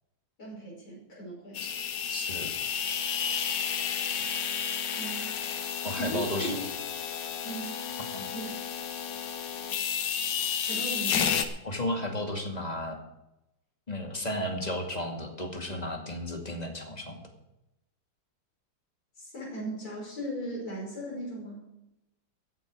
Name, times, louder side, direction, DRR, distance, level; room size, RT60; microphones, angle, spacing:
voice 1, 0.4-1.6 5.0-5.4 6.0-6.6 7.4-7.8 8.3-8.5 10.6-11.3 19.1-21.6, right 1 dB, 50° left, -6 dB, 6.4 m, -37 dB
sound 1, 1.5-11.5, left 8 dB, 70° left, 1.7 m, -31 dB
voice 2, 2.1-2.7 5.8-6.6 8.1-8.3 11.6-13.0 13.9-17.2, left 1 dB, 20° left, 3 dB, 2.2 m, -34 dB
15.5 x 12.0 x 4.8 m, 0.91 s
omnidirectional pair, 2.0 m